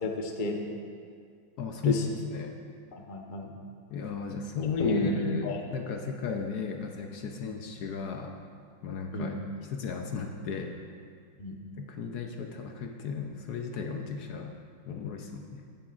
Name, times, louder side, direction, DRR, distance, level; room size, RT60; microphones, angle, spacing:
voice 1, 0.0-0.6 1.8-2.0 2.9-3.5 4.8-5.2 5.4-5.6 9.1-9.4 11.4-11.6, left 2 dB, 40° left, 1 dB, 0.7 m, -31 dB
voice 2, 1.6-1.9 2.3-2.6 3.9-8.4 8.8-9.4 9.7-10.8 11.8-14.6 14.9-15.6, left 6 dB, 65° left, 3 dB, 1.1 m, -34 dB
15.0 x 9.9 x 2.5 m, 2.2 s
omnidirectional pair, 2.0 m